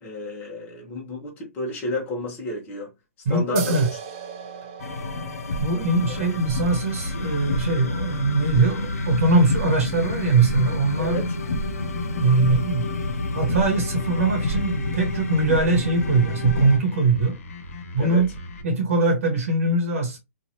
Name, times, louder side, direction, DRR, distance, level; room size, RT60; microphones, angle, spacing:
voice 1, 0.0-2.9 3.3-3.8 6.0-6.4 11.0-11.3 18.0-18.2, left 2 dB, 20° left, 0.9 m, -31 dB
voice 2, 3.2-3.9 5.6-11.4 12.2-12.9 13.3-17.3 17.9-18.3 18.6-20.2, right 3 dB, 65° right, 1.1 m, -21 dB
sound 1, 3.6-10.7, right 7 dB, 35° right, 0.6 m, -41 dB
sound 2, 4.8-16.8, left 2 dB, 80° left, 0.7 m, -29 dB
sound 3, 6.6-18.6, left 1 dB, 60° left, 1.0 m, -35 dB
3.0 x 2.5 x 2.7 m
hypercardioid pair, 155°, 8 cm